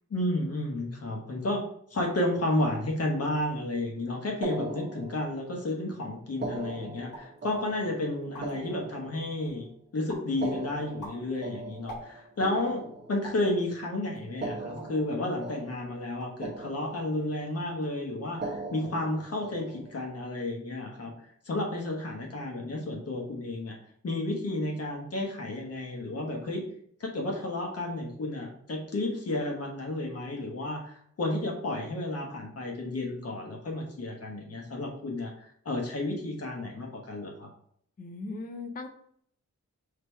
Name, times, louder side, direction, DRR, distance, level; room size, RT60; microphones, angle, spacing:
voice 1, 0.1-1.6 1.9-9.7 9.9-12.8 13.1-21.1 21.4-23.7 24.0-26.6 27.0-37.5, left 1 dB, 55° left, 0 dB, 1.0 m, -32 dB
sound 1, 4.4-5.7 6.3-9.6 10.3-13.6 14.3-16.1 16.4-17.5 18.3-20.1, right 2 dB, 35° right, 0.6 m, -40 dB
sound 2, 7.1-7.4 7.9-8.0 8.2-8.7 9.2-9.7 10.1-10.4 10.8-12.5 13.2-13.5 14.1-15.1 15.5-15.7 16.0-16.5 16.7-17.2, equal, 90° left, 1.4 m, -46 dB
voice 2, 38.0-38.9, left 3 dB, 30° left, 7 dB, 0.4 m, -38 dB
3.4 x 2.8 x 4.4 m, 0.66 s
wide cardioid pair, 155°, 30 cm